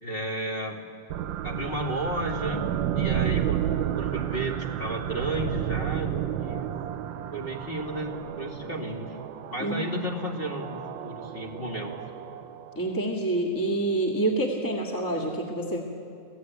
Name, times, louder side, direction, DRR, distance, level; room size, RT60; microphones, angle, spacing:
voice 1, 0.0-0.8 1.4-2.7 2.9-3.7 3.9-6.7 7.3-9.2 9.5-12.3, right 1 dB, 30° left, 0 dB, 2.6 m, -33 dB
sound 1, 1.1-13.1, right 11 dB, 75° right, 1.4 m, -32 dB
voice 2, 9.6-9.9 12.8-15.8, right 1 dB, 10° left, 0 dB, 1.8 m, -27 dB
27.0 x 16.5 x 9.4 m, 2.6 s
omnidirectional pair, 2.1 m